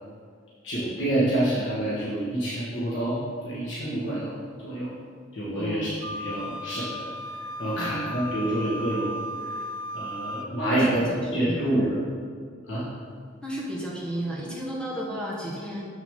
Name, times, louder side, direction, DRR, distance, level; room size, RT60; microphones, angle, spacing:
voice 1, 0.6-4.3 4.6-4.9 5.3-5.9 6.2-7.1 7.6-9.2 9.9-11.0 11.3-11.9 12.7-12.9, right 1 dB, 85° left, -8 dB, 1.4 m, -27 dB
voice 2, 5.5-5.9 7.8-8.1 10.7-10.9 11.3-11.7 13.4-15.8, right 1 dB, 5° left, -5 dB, 1.3 m, -33 dB
Wind instrument woodwind instrument, 6.0-10.5, left 1 dB, 80° right, 0.4 m, -35 dB
6.9 x 6.3 x 3.7 m, 2.1 s
head